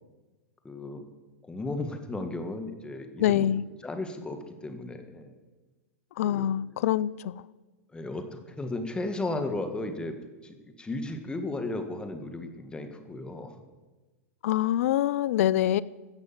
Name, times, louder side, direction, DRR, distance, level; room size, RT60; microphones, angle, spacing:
voice 1, 0.6-1.0 1.5-3.5 3.8-5.4 6.2-6.5 7.9-10.2 10.4-13.6, left 2 dB, 10° left, 1.8 m, -35 dB
voice 2, 3.2-3.6 6.2-7.3 14.4-15.8, left 12 dB, 65° left, 0.5 m, -25 dB
16.0 x 6.3 x 7.6 m
hypercardioid pair, 115°, 8 cm